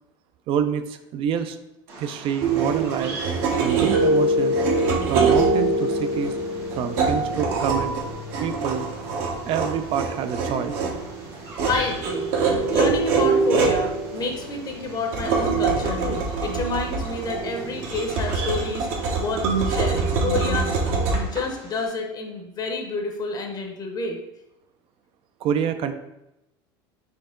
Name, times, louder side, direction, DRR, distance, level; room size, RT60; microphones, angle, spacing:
voice 1, 0.5-1.6 2.0-3.2 3.6-4.6 5.1-6.3 6.8-8.0 8.4-8.9 9.5-10.9 25.4-25.9, right 8 dB, 45° right, 10 dB, 0.4 m, -27 dB
Bird vocalization bird call bird song, 1.9-21.9, right 2 dB, 85° right, 1.3 m, -42 dB
sound 1, 2.4-21.1, right 3 dB, 65° right, 0.9 m, -24 dB
voice 2, 11.7-12.3 12.7-20.8 21.1-24.2, left 3 dB, 30° left, 3 dB, 0.7 m, -29 dB
4.4 x 2.8 x 3.6 m, 0.91 s
supercardioid pair, 115°, 12 cm